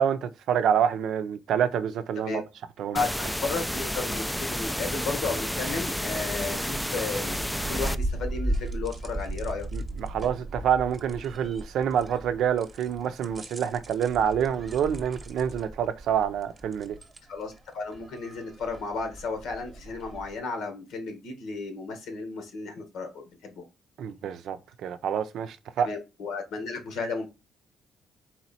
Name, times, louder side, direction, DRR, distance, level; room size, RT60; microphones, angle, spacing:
voice 1, 0.0-2.4 2.8-3.0 9.7-17.0 24.0-25.9, right 8 dB, 75° right, 0.5 m, -27 dB
voice 2, 2.9-9.7 17.3-23.6 25.8-27.3, left 4 dB, 85° left, 1.3 m, -34 dB
sound 1, 3.0-8.0, equal, 5° left, 0.3 m, -31 dB
sound 2, 6.2-20.4, right 1 dB, 30° right, 0.8 m, -37 dB
4.0 x 3.0 x 4.1 m
cardioid pair, 90°, 0 cm